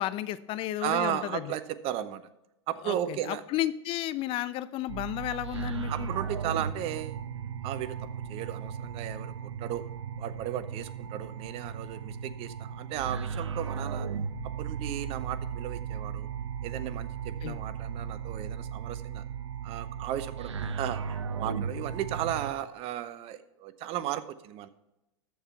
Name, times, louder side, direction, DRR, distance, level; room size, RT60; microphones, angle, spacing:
voice 1, 0.0-1.4 2.8-6.1 17.4-17.6, left 13 dB, 40° left, 15 dB, 0.5 m, -32 dB
voice 2, 0.8-2.2 2.7-3.4 5.9-7.2 7.6-8.0 8.3-9.9 10.2-14.1 14.6-16.3 16.6-19.2 19.6-24.7, right 11 dB, 40° right, 14 dB, 0.8 m, -35 dB
sound 1, 4.9-22.5, right 6 dB, 85° right, 0.8 m, -36 dB
13.5 x 4.7 x 5.6 m, 0.91 s
hypercardioid pair, 100°, 15 cm